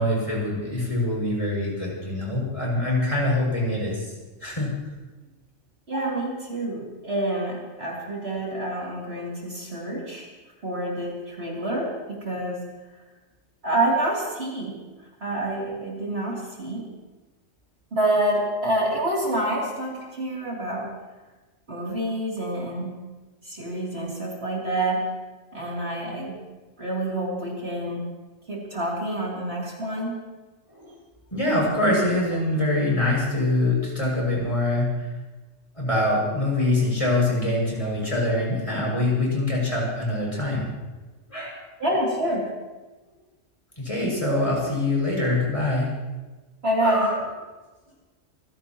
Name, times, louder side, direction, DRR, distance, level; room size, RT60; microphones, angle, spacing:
voice 1, 0.0-4.1 4.4-4.7 30.7-30.9 31.3-35.1 35.8-40.7 41.3-41.6 43.8-45.9 46.8-47.2, left 1 dB, 25° left, -4 dB, 6.5 m, -24 dB
voice 2, 5.9-10.3 10.6-12.6 13.6-14.8 15.2-16.8 17.9-20.9 21.7-22.9 23.4-25.0 25.5-26.3 26.8-28.0 28.5-30.2 41.8-42.4 46.6-47.1, right 1 dB, 50° right, -4 dB, 3.4 m, -27 dB
27.0 x 16.5 x 3.0 m, 1.2 s
omnidirectional pair, 1.3 m